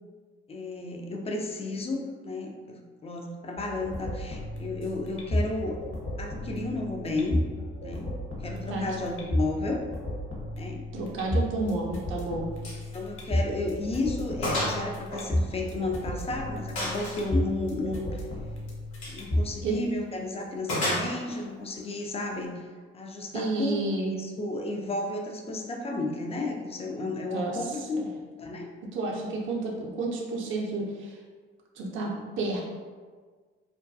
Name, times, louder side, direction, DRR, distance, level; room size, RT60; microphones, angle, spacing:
voice 1, 0.5-5.8 6.2-7.4 7.8-8.2 8.4-9.8 10.6-10.9 12.9-18.2 19.1-22.5 22.9-28.7, left 2 dB, 20° left, 1 dB, 0.4 m, -33 dB
sound 1, 3.6-19.6, left 1 dB, 40° left, 0.8 m, -33 dB
voice 2, 10.9-12.5 19.6-19.8 23.3-24.2 27.3-28.1 28.9-31.2 31.8-32.6, right 2 dB, 40° right, -2 dB, 0.5 m, -31 dB
Gunshot gunfire, 12.6-12.8 13.2-13.3 13.8-13.9 14.4-14.8 15.1-16.1 16.8-17.3 18.9-19.2 20.7-21.4, left 1 dB, 75° left, 0.8 m, -30 dB
2.3 x 2.2 x 2.5 m, 1.5 s
hypercardioid pair, 45°, 31 cm